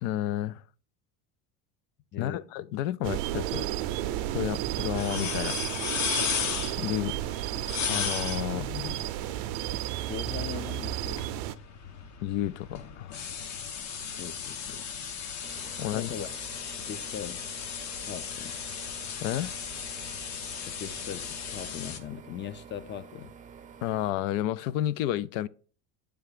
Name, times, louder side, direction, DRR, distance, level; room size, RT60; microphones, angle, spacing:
voice 1, 0.0-0.6 2.2-3.7 4.3-5.6 6.8-7.1 7.9-8.6 12.2-13.1 15.8-16.1 19.2-19.6 23.8-25.5, left 13 dB, 85° left, 0.5 m, -31 dB
voice 2, 2.1-2.5 8.5-9.0 10.1-11.2 14.1-14.9 15.9-16.3 16.8-17.4 18.1-18.6 20.6-23.4, left 9 dB, 30° left, 0.5 m, -40 dB
sound 1, 3.0-11.5, right 14 dB, 80° right, 0.5 m, -33 dB
sound 2, 4.0-22.0, left 7 dB, 50° left, 1.0 m, -36 dB
sound 3, 15.4-24.1, right 6 dB, 20° right, 0.5 m, -50 dB
7.8 x 3.5 x 4.9 m
cardioid pair, 120°, 37 cm